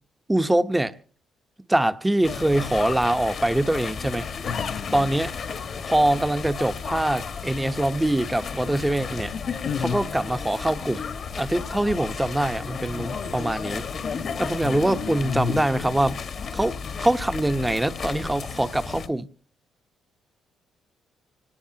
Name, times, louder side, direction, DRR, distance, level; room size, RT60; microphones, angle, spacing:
voice 1, 0.3-0.9 1.7-4.3 4.9-5.3 5.9-9.3 9.8-11.0 11.4-13.9 14.4-16.2 16.5-19.3, right 1 dB, 10° right, 1.0 m, -24 dB
sound 1, 2.2-19.1, left 6 dB, 55° left, 1.6 m, -33 dB
voice 2, 4.4-5.1 9.6-10.0 14.6-15.6, left 7 dB, 75° left, 1.0 m, -31 dB
25.0 x 18.5 x 2.9 m
cardioid pair, 90°, 0 cm